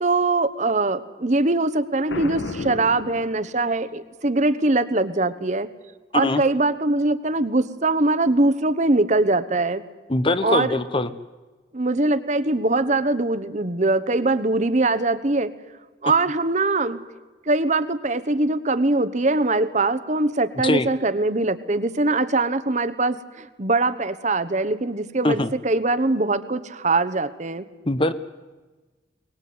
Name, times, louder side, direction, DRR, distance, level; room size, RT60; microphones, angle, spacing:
voice 1, 0.0-5.7 6.1-9.8 10.4-10.8 11.7-15.5 16.0-17.0 17.5-27.7, right 2 dB, 40° right, 12 dB, 1.0 m, -22 dB
Boom, 2.1-3.9, left 2 dB, 80° left, 1.4 m, -33 dB
voice 2, 10.1-11.1 20.6-20.9 25.2-25.5 27.8-28.1, left 2 dB, 25° left, 13 dB, 0.8 m, -22 dB
23.0 x 19.5 x 9.6 m, 1.2 s
head